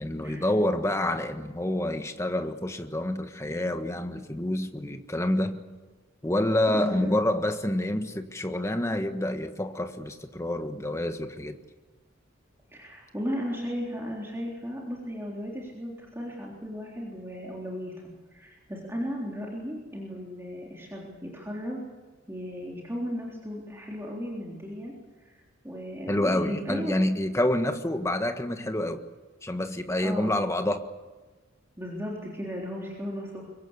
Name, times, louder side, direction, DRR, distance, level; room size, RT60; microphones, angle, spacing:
voice 1, 0.0-5.6 6.2-11.6 26.1-29.1 29.4-30.9, left 1 dB, 15° left, 6 dB, 1.5 m, -28 dB
voice 2, 6.7-7.2 12.7-17.9 18.3-21.8 22.3-25.4 25.6-27.0 30.0-30.4 31.8-33.5, equal, 15° right, -3 dB, 3.7 m, -35 dB
25.0 x 23.0 x 8.3 m, 1.3 s
head